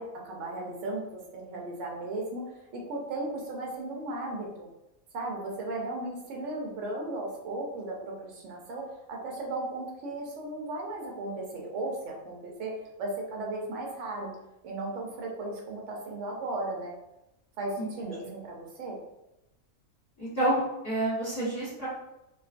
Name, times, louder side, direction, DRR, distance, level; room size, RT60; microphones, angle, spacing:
voice 1, 0.0-2.4 2.7-4.7 5.1-8.8 9.1-12.7 13.0-14.3 14.6-17.0 17.6-19.0, right 2 dB, 60° right, -1 dB, 1.0 m, -36 dB
voice 2, 17.8-18.1 20.2-21.9, right 1 dB, 30° left, -12 dB, 1.1 m, -29 dB
2.4 x 2.4 x 2.4 m, 0.91 s
omnidirectional pair, 1.5 m